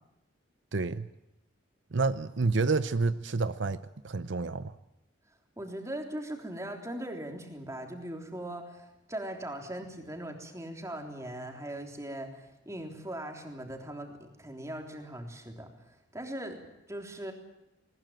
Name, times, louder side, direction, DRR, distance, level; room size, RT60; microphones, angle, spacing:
voice 1, 0.7-1.1 1.9-4.7, right 3 dB, 70° right, 13 dB, 0.7 m, -29 dB
voice 2, 5.6-15.7 16.1-17.3, right 1 dB, 15° right, 3 dB, 3.5 m, -40 dB
20.5 x 20.0 x 9.0 m, 0.92 s
head